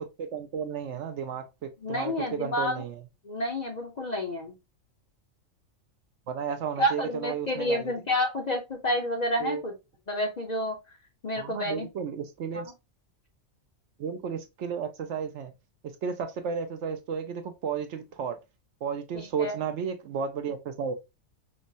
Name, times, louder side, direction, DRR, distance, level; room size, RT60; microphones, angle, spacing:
voice 1, 0.0-3.0 6.3-7.9 9.4-9.6 11.4-12.7 14.0-15.5 15.8-18.4 18.8-20.9, right 6 dB, 70° right, 0.8 m, -33 dB
voice 2, 1.8-2.8 3.2-4.5 6.8-9.7 10.1-10.8 11.2-11.9 12.5-12.6 19.1-19.6, left 1 dB, 40° left, 0.6 m, -29 dB
5.1 x 2.0 x 2.5 m
omnidirectional pair, 1.4 m